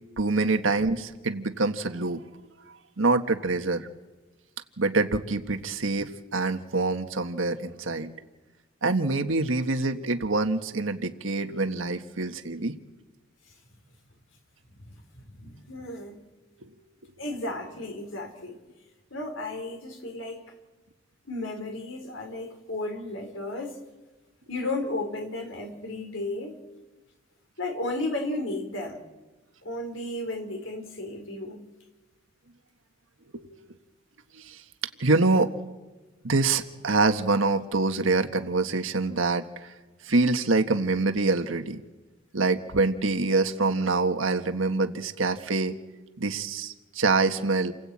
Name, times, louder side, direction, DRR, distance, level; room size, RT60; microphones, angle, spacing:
voice 1, 0.2-2.2 3.0-3.9 4.8-8.1 8.8-12.8 16.6-16.7 17.0-17.1 33.3-33.4 34.4-34.6 35.0-35.5 36.2-39.7 40.0-41.8 42.3-45.7 46.2-47.7, right 3 dB, 85° right, 7 dB, 1.5 m, -25 dB
voice 2, 14.9-16.2 17.2-18.6 19.1-20.5 21.3-23.8 24.5-26.6 27.6-29.0 29.6-31.6, left 2 dB, 80° left, 5 dB, 4.6 m, -34 dB
29.0 x 21.5 x 8.7 m, 1.2 s
head